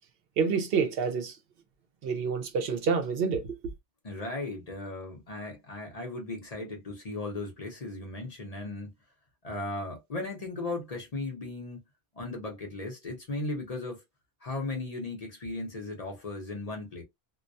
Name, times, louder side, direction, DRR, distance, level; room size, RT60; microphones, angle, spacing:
voice 1, 0.4-1.3 2.0-3.6, right 5 dB, 70° right, 0.7 m, -28 dB
voice 2, 4.0-8.9 9.4-11.8 12.1-14.0 14.4-17.0, left 2 dB, 40° left, 0.7 m, -36 dB
2.3 x 2.1 x 2.5 m
omnidirectional pair, 1.1 m